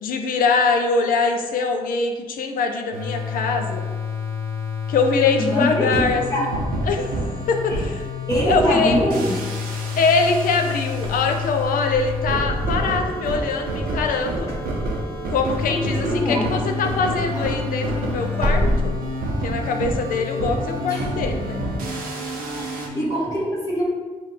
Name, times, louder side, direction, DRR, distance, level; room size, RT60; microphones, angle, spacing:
voice 1, 0.0-3.8 4.9-6.2 6.8-8.0 8.5-9.0 10.0-14.5 15.3-19.0 19.4-21.6, left 4 dB, 75° left, 4 dB, 0.4 m, -23 dB
sound 1, 2.9-22.9, left 1 dB, 90° right, 0.6 m, -28 dB
voice 2, 5.4-6.5 7.7-7.8 8.3-9.4 14.5-14.6 15.7-16.5 20.9-21.1 22.6-23.8, equal, 25° left, -7 dB, 1.2 m, -24 dB
Wind / Car, 11.0-16.7 17.1-19.5, left 1 dB, 35° right, 0.7 m, -29 dB
5.4 x 2.2 x 3.2 m, 1.4 s
supercardioid pair, 50°, 15 cm